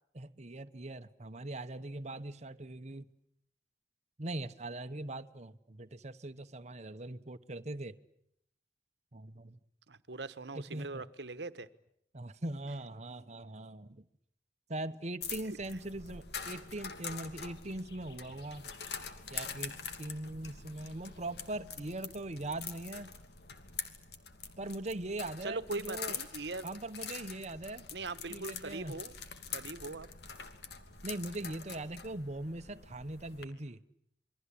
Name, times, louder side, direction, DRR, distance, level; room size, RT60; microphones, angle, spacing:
voice 1, 0.1-3.0 4.2-7.9 9.1-9.6 10.5-11.0 12.1-14.1 14.7-18.7 19.3-23.1 24.6-26.2 26.6-27.9 28.3-28.9 31.0-33.8, right 2 dB, 40° right, 1.1 m, -41 dB
voice 2, 9.9-11.7 15.5-15.6 25.4-26.7 27.9-29.1 29.5-30.1, right 3 dB, 75° right, 1.3 m, -41 dB
sound 1, 15.2-33.4, left 6 dB, 65° left, 2.7 m, -45 dB
28.0 x 23.0 x 8.6 m
head